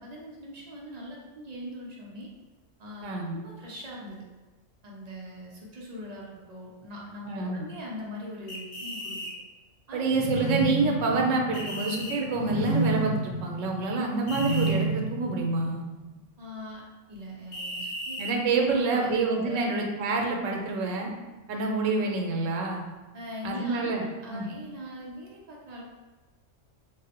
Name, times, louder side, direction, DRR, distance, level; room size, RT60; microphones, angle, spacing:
voice 1, 0.0-2.3 2.8-4.2 4.8-9.2 9.9-10.0 16.4-18.2 18.6-19.7 23.1-25.8, left 1 dB, 50° right, -3 dB, 0.5 m, -41 dB
voice 2, 3.0-3.3 7.3-7.6 9.9-15.8 18.2-21.1 21.5-22.8 23.4-24.0 24.3-24.5, right 3 dB, 85° right, 1 dB, 0.9 m, -27 dB
sound 1, 8.5-9.3 11.5-12.2 14.3-14.7 17.5-18.4, equal, 55° left, 0.5 m, -36 dB
sound 2, 10.0-16.1, right 2 dB, 80° left, 1.0 m, -31 dB
3.7 x 2.0 x 2.8 m, 1.2 s
omnidirectional pair, 1.3 m